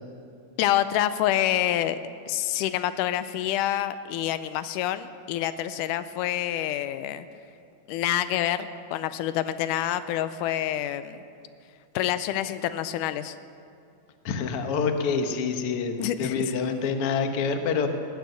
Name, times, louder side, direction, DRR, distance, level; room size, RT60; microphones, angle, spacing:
voice 1, 0.6-2.0 2.3-7.3 7.9-11.2 12.0-13.4 16.0-16.5, left 12 dB, 90° left, 13 dB, 2.1 m, -27 dB
voice 2, 14.2-17.9, left 5 dB, 60° left, 6 dB, 1.7 m, -27 dB
19.0 x 9.3 x 8.0 m, 2.4 s
omnidirectional pair, 3.6 m